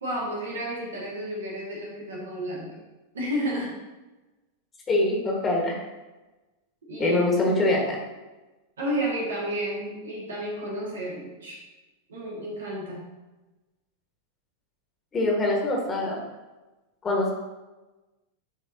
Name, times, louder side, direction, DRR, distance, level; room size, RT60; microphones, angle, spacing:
voice 1, 0.0-2.8 3.1-3.8 6.8-7.2 8.8-11.6 12.1-13.0, equal, 65° right, -4 dB, 2.0 m, -31 dB
voice 2, 4.9-5.8 7.0-8.0 15.1-16.2 17.0-17.3, left 2 dB, 20° left, -2 dB, 1.5 m, -24 dB
10.0 x 4.3 x 2.8 m, 1.1 s
figure-of-eight pair, 90°, 0 cm